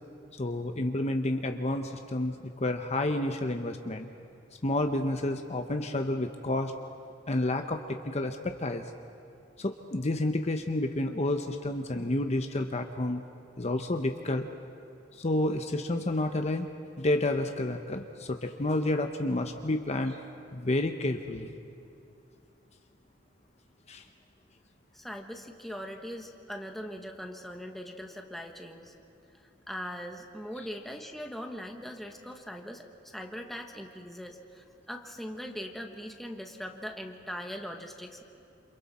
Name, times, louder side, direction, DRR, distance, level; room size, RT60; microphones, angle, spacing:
voice 1, 0.4-4.1 4.6-6.7 7.3-8.8 9.6-13.2 13.6-14.5 15.1-16.7 17.0-20.2 20.5-21.6 23.9-24.0, left 1 dB, 35° left, 5 dB, 0.8 m, -30 dB
voice 2, 24.9-28.9 29.7-38.2, equal, ahead, 2 dB, 1.4 m, -41 dB
28.5 x 27.5 x 4.3 m, 2.5 s
head